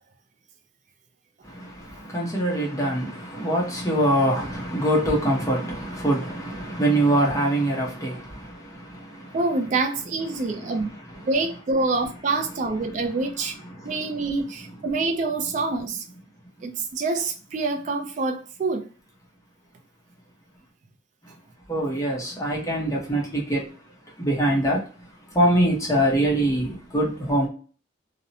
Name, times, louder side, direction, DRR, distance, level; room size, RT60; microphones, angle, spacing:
voice 1, 1.4-9.4 10.3-11.2 13.6-14.3 21.2-21.3 21.7-23.7 24.2-27.5, right 1 dB, 15° left, 0.7 m, -24 dB
voice 2, 9.3-10.9 11.3-13.5 13.8-16.0 16.6-18.9, right 3 dB, 40° right, 0.3 m, -26 dB
2.6 x 2.0 x 2.6 m
head